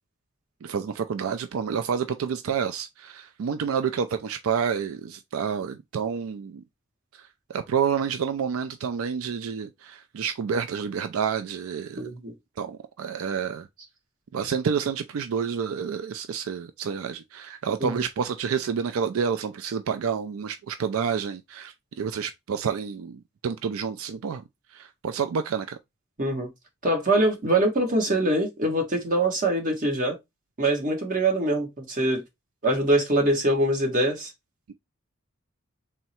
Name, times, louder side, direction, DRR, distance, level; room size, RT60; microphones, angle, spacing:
voice 1, 0.6-6.6 7.2-12.1 12.6-13.7 14.3-24.4 24.7-25.8 34.7-34.8, right 6 dB, 85° right, 0.4 m, -29 dB
voice 2, 12.0-12.3 17.8-17.9 26.2-26.5 26.8-30.2 30.6-32.2 32.6-34.3, right 1 dB, 40° right, 1.3 m, -23 dB
3.6 x 2.1 x 4.2 m
head